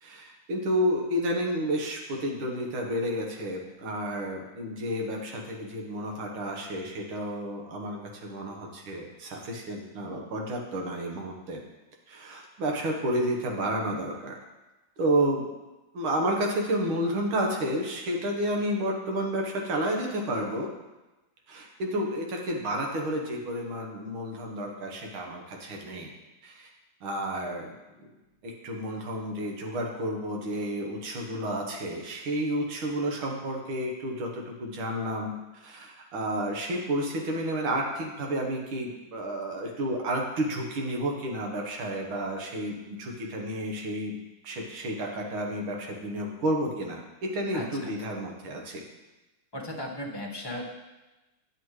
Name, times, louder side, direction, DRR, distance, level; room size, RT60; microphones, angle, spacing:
voice 1, 0.0-11.6 12.1-14.4 15.0-15.5 15.9-20.7 21.5-26.1 26.4-26.7 27.0-27.7 28.4-44.2 44.4-48.8, right 1 dB, 80° right, 1 dB, 2.1 m, -31 dB
voice 2, 47.5-47.9 49.5-50.6, left 1 dB, 15° left, -2 dB, 0.9 m, -36 dB
10.5 x 7.6 x 3.2 m, 1.1 s
omnidirectional pair, 2.2 m